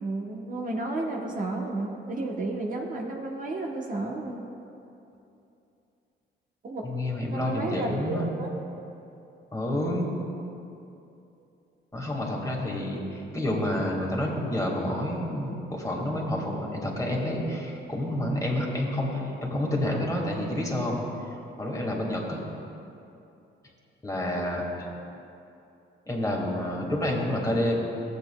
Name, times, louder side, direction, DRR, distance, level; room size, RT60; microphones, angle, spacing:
voice 1, 0.0-4.4 6.6-6.8 7.3-8.5, right 2 dB, 40° right, -1 dB, 1.0 m, -32 dB
voice 2, 6.8-8.3 9.5-10.1 11.9-21.0 21.6-22.4 24.0-24.6 26.1-27.7, left 1 dB, 15° left, -2 dB, 1.8 m, -29 dB
15.0 x 8.0 x 2.3 m, 2.7 s
cardioid pair, 90°, 20 cm